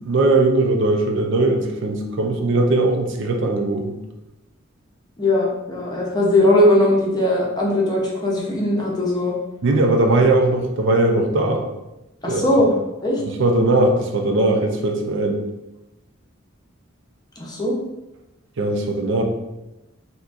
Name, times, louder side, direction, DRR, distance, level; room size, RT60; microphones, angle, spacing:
voice 1, 0.0-4.0 9.6-11.6 12.3-12.4 13.2-15.4 18.6-19.2, right 2 dB, 65° right, 3 dB, 0.5 m, -19 dB
voice 2, 5.2-9.4 12.2-12.7 13.0-13.2 17.4-17.8, left 1 dB, 20° left, -3 dB, 0.7 m, -19 dB
3.8 x 2.8 x 2.4 m, 0.96 s
head